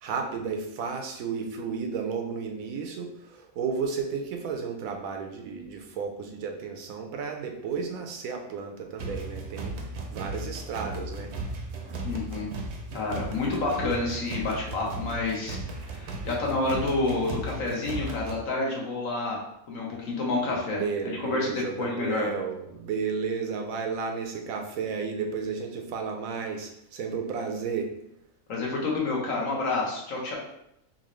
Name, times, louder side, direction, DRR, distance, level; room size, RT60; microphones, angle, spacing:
voice 1, 0.0-9.8 10.1-11.3 20.7-27.9, right 5 dB, 90° right, 4 dB, 1.1 m, -33 dB
sound 1, 9.0-18.4, right 2 dB, 65° right, 0.8 m, -36 dB
voice 2, 12.0-12.5 12.9-19.4 19.7-22.3 28.5-30.4, left 3 dB, 80° left, -3 dB, 1.4 m, -29 dB
4.1 x 2.6 x 3.0 m, 0.78 s
omnidirectional pair, 1.4 m